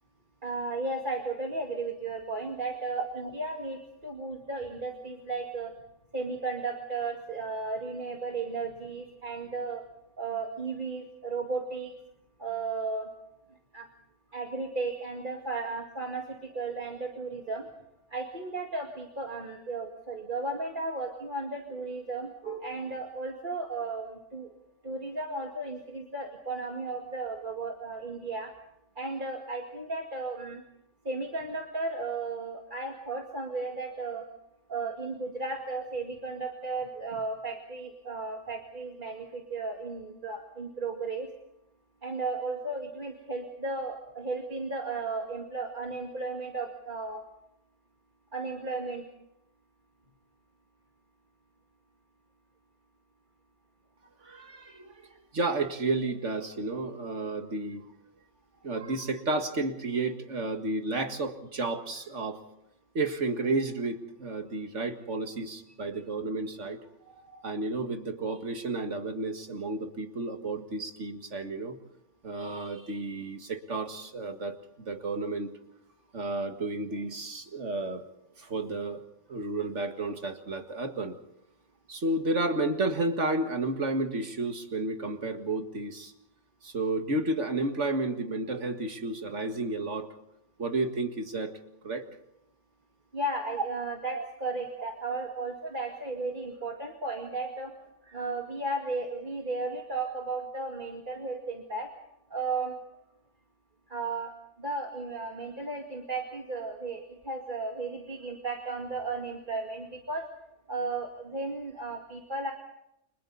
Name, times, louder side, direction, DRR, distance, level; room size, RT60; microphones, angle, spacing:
voice 1, 0.4-5.7 6.1-9.9 10.2-11.9 12.4-13.1 13.7-13.9 14.3-17.7 18.1-24.5 24.8-28.5 29.0-30.6 31.0-34.3 34.7-41.3 42.0-47.2 48.3-49.0 65.9-66.0 93.1-97.8 98.0-101.9 102.3-102.8 103.9-110.3 110.7-112.5, right 3 dB, 40° right, 1 dB, 2.4 m, -34 dB
voice 2, 54.2-57.9 58.6-62.4 62.9-66.8 67.1-71.8 72.2-75.5 76.1-78.1 78.4-79.0 79.3-81.2 81.9-86.1 86.6-90.1 90.6-91.6 91.8-92.1 94.1-94.2, right 2 dB, 75° right, 5 dB, 2.2 m, -32 dB
30.0 x 25.5 x 4.1 m, 0.81 s
omnidirectional pair, 1.3 m